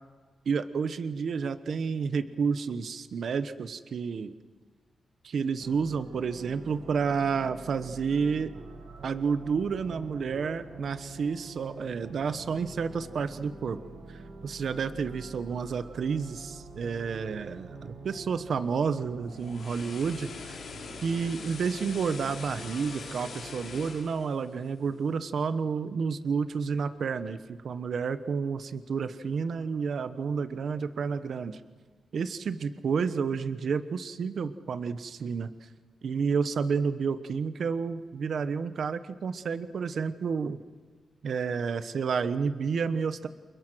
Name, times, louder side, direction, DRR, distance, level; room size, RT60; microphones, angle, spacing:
voice 1, 0.4-4.3 5.2-8.5 9.0-13.8 14.1-20.6 21.0-31.6 32.1-35.5 36.0-40.6 41.2-43.3, right 5 dB, 60° right, 12 dB, 1.1 m, -30 dB
sound 1, 5.6-24.0, right 3 dB, 85° right, 6.2 m, -46 dB
sound 2, 19.1-25.3 25.7-25.9, left 5 dB, 70° left, 4.1 m, -44 dB
29.5 x 28.5 x 6.3 m, 1.4 s
wide cardioid pair, 165°, 0 cm